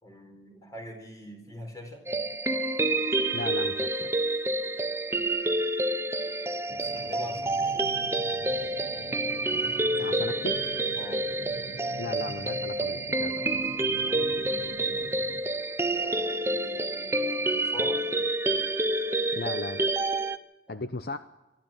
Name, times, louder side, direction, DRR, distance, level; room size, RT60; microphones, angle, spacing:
voice 1, 0.0-2.1 6.7-8.0 10.9-11.2 13.8-15.1 15.9-18.1 20.7-20.8, left 1 dB, 20° left, 3 dB, 4.3 m, -44 dB
sound 1, 2.1-20.4, right 2 dB, 15° right, 0.8 m, -28 dB
voice 2, 3.3-4.2 9.5-9.6 10.0-10.6 12.0-13.4 19.3-19.9 20.7-21.2, left 3 dB, 55° left, 10 dB, 0.7 m, -36 dB
sound 2, 6.7-15.4, right 1 dB, 65° right, 1.4 m, -44 dB
23.0 x 13.5 x 9.0 m, 1.0 s
head